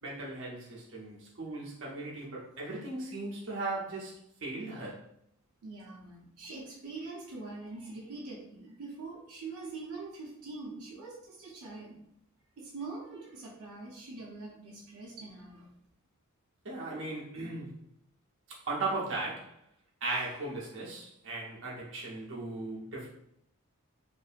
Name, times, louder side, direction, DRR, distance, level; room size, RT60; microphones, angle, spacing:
voice 1, 0.0-5.0 16.6-17.8 18.5-19.5 20.0-23.1, right 2 dB, 60° right, -4 dB, 0.8 m, -37 dB
voice 2, 5.6-12.0 12.6-15.7, right 3 dB, 90° right, -3 dB, 0.6 m, -44 dB
2.8 x 2.6 x 2.4 m, 0.72 s
head